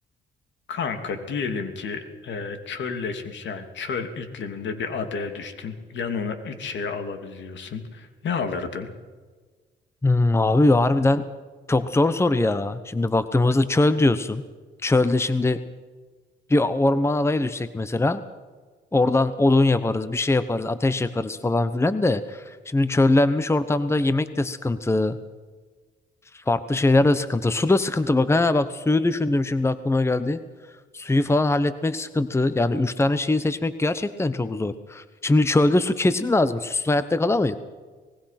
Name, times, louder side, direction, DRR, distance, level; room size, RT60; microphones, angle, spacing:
voice 1, 0.7-8.9, left 5 dB, 65° left, 7 dB, 3.0 m, -31 dB
voice 2, 10.0-11.2 11.7-14.4 14.8-15.6 16.5-18.2 18.9-25.2 26.3-30.4 30.9-37.6, left 2 dB, 15° left, 13 dB, 1.0 m, -21 dB
25.0 x 20.0 x 6.0 m, 1.4 s
cardioid pair, 90°, 20 cm